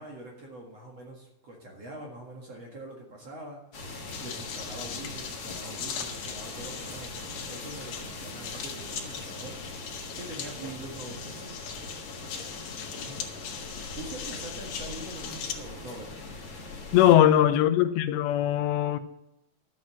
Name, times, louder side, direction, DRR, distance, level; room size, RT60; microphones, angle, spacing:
voice 1, 0.0-3.6 4.2-9.5 10.2-11.6 12.9-13.3 13.9-16.2 17.0-17.4, right 2 dB, 50° right, 2.2 m, -43 dB
sound 1, 3.7-17.2, left 2 dB, 45° left, 1.2 m, -41 dB
sound 2, 4.1-15.5, left 7 dB, 65° left, 3.0 m, -40 dB
voice 2, 16.9-19.0, left 12 dB, 85° left, 3.0 m, -20 dB
12.5 x 7.9 x 7.4 m
omnidirectional pair, 4.9 m